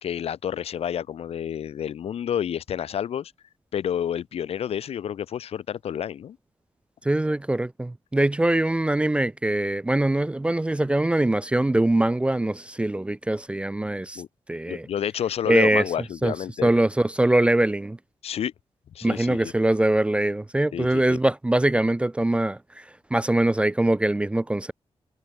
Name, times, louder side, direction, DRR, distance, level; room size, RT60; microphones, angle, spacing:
voice 1, 0.0-3.3 3.7-6.4 14.2-14.3 14.7-16.7 18.2-18.5 18.9-19.5 20.7-21.2, left 9 dB, 70° left, 0.5 m, -29 dB
voice 2, 7.0-14.2 14.5-14.9 15.5-15.9 16.2-16.3 16.6-18.0 19.0-22.8 23.1-24.7, right 1 dB, 10° right, 0.3 m, -23 dB
wide cardioid pair, 180°, 11 cm